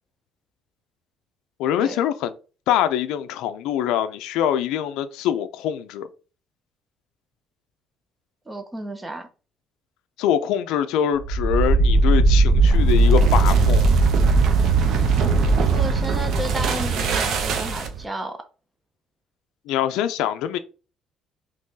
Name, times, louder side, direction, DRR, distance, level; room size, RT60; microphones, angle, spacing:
voice 1, 1.6-2.3 2.7-6.1 10.2-13.9 19.7-20.6, left 10 dB, 90° left, 0.3 m, -24 dB
voice 2, 8.5-9.3 15.5-18.4, right 1 dB, 15° right, 0.6 m, -32 dB
sound 1, 11.2-18.0, right 3 dB, 65° right, 0.6 m, -18 dB
3.0 x 2.7 x 3.6 m
cardioid pair, 115°, 0 cm